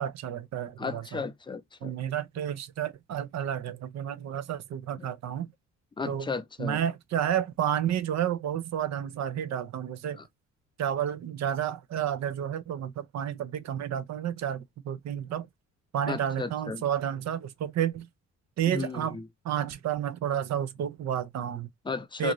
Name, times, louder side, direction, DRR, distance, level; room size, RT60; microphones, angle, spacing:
voice 1, 0.0-1.0 1.8-5.5 6.1-6.3 6.6-10.2 10.8-15.5 15.9-18.1 18.6-19.2 19.4-21.7 22.2-22.3, right 10 dB, 60° right, 0.6 m, -31 dB
voice 2, 0.8-2.0 5.0-5.1 6.0-6.8 10.1-10.3 16.1-16.8 18.7-19.3 21.8-22.3, left 4 dB, 15° left, 0.5 m, -34 dB
2.6 x 2.5 x 2.9 m
cardioid pair, 90°, 30 cm